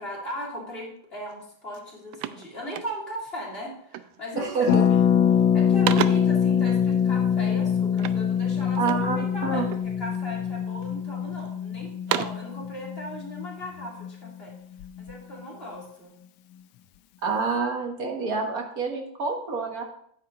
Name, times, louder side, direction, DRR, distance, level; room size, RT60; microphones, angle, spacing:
voice 1, 0.0-4.8 5.5-14.5 15.0-16.1, equal, 30° left, -4 dB, 2.8 m, -38 dB
sound 1, 1.3-1.4 1.7-3.3 3.9-4.2 4.6-5.1 5.4-6.4 8.0-9.2 9.7-10.3 10.8-11.5 11.9-12.5, right 11 dB, 80° right, 1.3 m, -33 dB
voice 2, 4.4-4.8 8.8-9.7 17.2-19.8, right 4 dB, 50° right, 2 dB, 1.8 m, -27 dB
Harp, 4.7-14.3 14.5-14.6 14.8-15.1, left 8 dB, 90° left, 1.4 m, -24 dB
9.6 x 8.3 x 3.8 m, 0.67 s
omnidirectional pair, 2.1 m